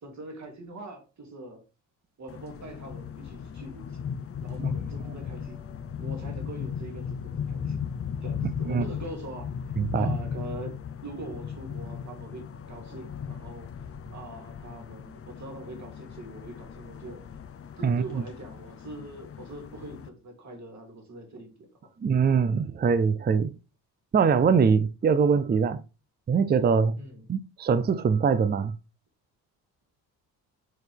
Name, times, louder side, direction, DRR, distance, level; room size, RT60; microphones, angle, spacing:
voice 1, 0.0-1.6 2.2-4.1 4.4-5.6 6.0-7.8 8.2-9.5 9.9-13.7 14.1-17.2 17.8-21.7 26.9-27.3, right 2 dB, 45° right, 2.6 m, -43 dB
sound 1, 2.3-20.1, left 7 dB, 35° left, 0.7 m, -36 dB
voice 2, 9.8-10.1 17.8-18.2 22.0-23.5 24.1-25.8 26.3-27.0 27.3-28.7, right 6 dB, 25° right, 0.5 m, -23 dB
6.4 x 4.4 x 3.5 m
cardioid pair, 80°, 38 cm